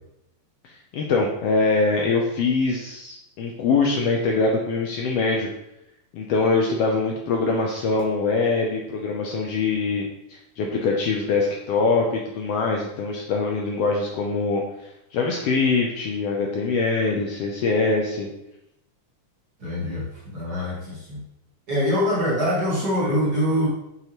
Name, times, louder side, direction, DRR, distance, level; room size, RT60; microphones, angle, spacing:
voice 1, 0.9-5.5 6.1-14.6 15.1-18.3, left 3 dB, 80° left, 0 dB, 1.4 m, -23 dB
voice 2, 19.6-21.2 21.7-23.7, equal, 45° right, -7 dB, 1.5 m, -24 dB
5.7 x 5.6 x 3.0 m, 0.84 s
omnidirectional pair, 3.4 m